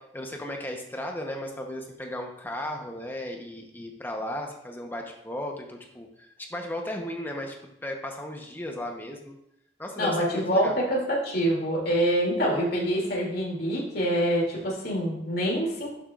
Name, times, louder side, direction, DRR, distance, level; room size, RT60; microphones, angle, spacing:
voice 1, 0.0-9.4 9.8-10.8, left 1 dB, 10° left, 2 dB, 1.0 m, -35 dB
voice 2, 10.0-15.9, equal, 55° left, -3 dB, 2.8 m, -26 dB
11.0 x 7.2 x 2.5 m, 0.79 s
head